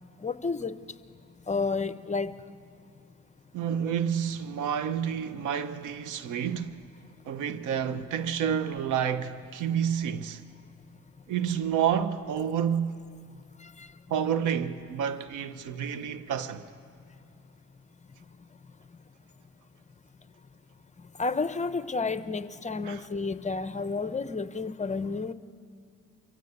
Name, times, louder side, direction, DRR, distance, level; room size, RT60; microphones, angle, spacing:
voice 1, 0.2-0.7 1.5-2.3 13.8-13.9 21.2-25.3, left 4 dB, 25° left, 0.8 m, -30 dB
voice 2, 3.5-6.8 7.2-10.4 11.3-13.0 14.1-16.6 22.9-23.0, right 8 dB, 85° right, 1.1 m, -29 dB
25.0 x 15.5 x 8.2 m
cardioid pair, 90°, 30 cm